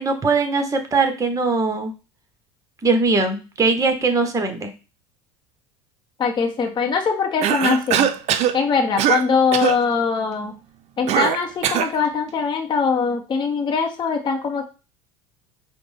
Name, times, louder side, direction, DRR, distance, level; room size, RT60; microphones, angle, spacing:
voice 1, 0.0-1.9 2.8-4.7, right 3 dB, 20° right, 7 dB, 0.9 m, -20 dB
voice 2, 6.2-8.1 8.5-10.6 11.0-14.6, left 5 dB, 30° left, 3 dB, 0.7 m, -22 dB
Cough, 7.4-8.6 9.0-9.3 9.5-9.8 11.1-12.0, right 10 dB, 50° right, 0.5 m, -20 dB
5.0 x 2.1 x 3.3 m, 0.31 s
hypercardioid pair, 85°, 15 cm